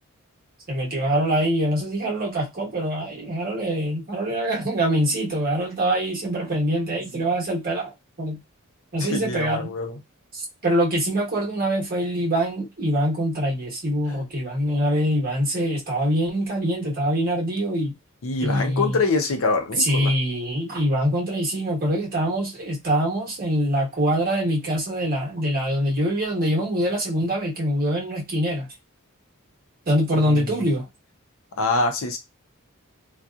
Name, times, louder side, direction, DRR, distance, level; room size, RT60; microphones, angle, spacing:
voice 1, 0.7-8.4 8.9-9.7 10.3-17.9 18.4-19.0 19.8-28.7 29.9-30.9, equal, 45° right, 1.2 m, -24 dB
voice 2, 9.0-10.0 18.2-20.1 30.1-30.6 31.6-32.2, left 3 dB, 65° left, 0.6 m, -25 dB
2.7 x 2.3 x 2.3 m
head